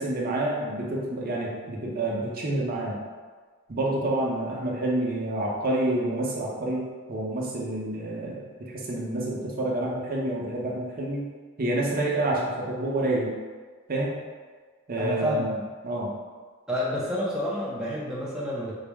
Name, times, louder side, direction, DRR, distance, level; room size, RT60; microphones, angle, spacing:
voice 1, 0.0-3.0 3.7-11.3 11.6-13.3 13.9-14.2 14.9-15.6 15.8-16.2, right 1 dB, 45° right, -3 dB, 0.6 m, -28 dB
voice 2, 15.0-15.5 16.7-18.7, left 1 dB, 5° right, -7 dB, 0.5 m, -29 dB
3.9 x 2.0 x 3.4 m, 1.5 s
head